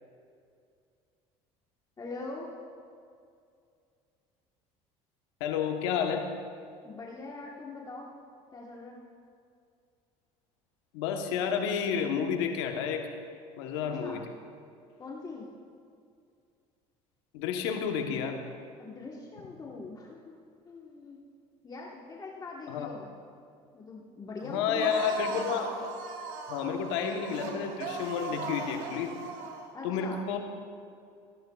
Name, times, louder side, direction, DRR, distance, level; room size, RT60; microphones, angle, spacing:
voice 1, 2.0-2.5 6.8-8.1 8.5-9.0 13.8-14.3 15.0-15.5 18.8-20.4 20.6-21.2 21.6-23.1 23.7-25.1 29.7-30.2, left 3 dB, 25° left, -3 dB, 1.3 m, -42 dB
voice 2, 5.4-6.3 10.9-13.1 13.6-14.2 17.3-18.4 22.7-22.9 24.4-25.7 26.5-29.1 29.8-30.4, left 7 dB, 85° left, 4 dB, 1.1 m, -30 dB
sound 1, 24.8-29.7, right 4 dB, 70° right, 1.2 m, -38 dB
15.5 x 10.5 x 2.4 m, 2.4 s
supercardioid pair, 90°, 14 cm